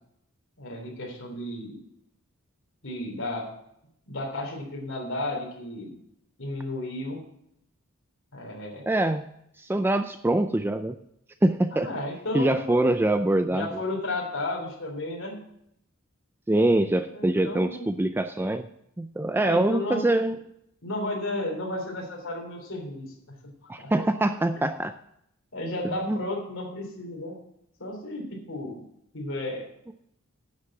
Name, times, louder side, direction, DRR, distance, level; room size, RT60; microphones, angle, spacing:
voice 1, 0.6-1.8 2.8-3.5 4.1-5.9 6.4-7.2 8.3-8.9 11.7-12.8 13.5-15.3 17.1-17.9 19.3-20.1 20.8-23.1 23.6-23.9 25.5-27.4 27.8-28.8 29.1-29.6, left 1 dB, 65° left, 0 dB, 3.3 m, -33 dB
voice 2, 8.9-9.2 9.6-11.0 11.4-11.9 12.3-13.7 16.5-18.7 19.0-20.4 23.7-24.9 26.1-26.2, right 1 dB, 10° right, 9 dB, 0.3 m, -24 dB
10.5 x 7.4 x 6.1 m, 0.75 s
head